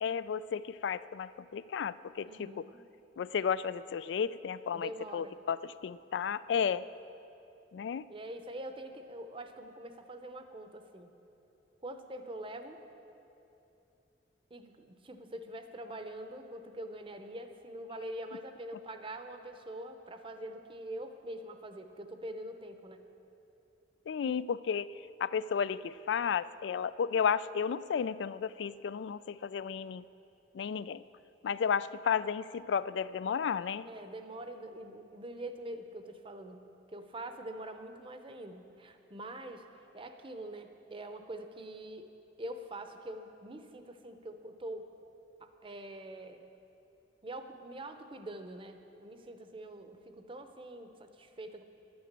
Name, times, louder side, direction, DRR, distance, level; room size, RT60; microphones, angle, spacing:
voice 1, 0.0-2.7 3.2-6.8 7.7-8.1 24.1-24.9 25.2-30.0 30.5-31.0 31.4-33.9, left 7 dB, 80° left, 17 dB, 0.3 m, -33 dB
voice 2, 2.2-2.8 4.7-5.4 6.5-6.6 8.1-11.1 11.8-12.8 14.5-23.0 33.8-36.6 36.9-39.6 39.9-42.1 42.4-44.9 45.4-46.4 47.2-51.6, right 1 dB, 30° right, 7 dB, 0.7 m, -44 dB
11.5 x 9.5 x 7.4 m, 2.8 s
head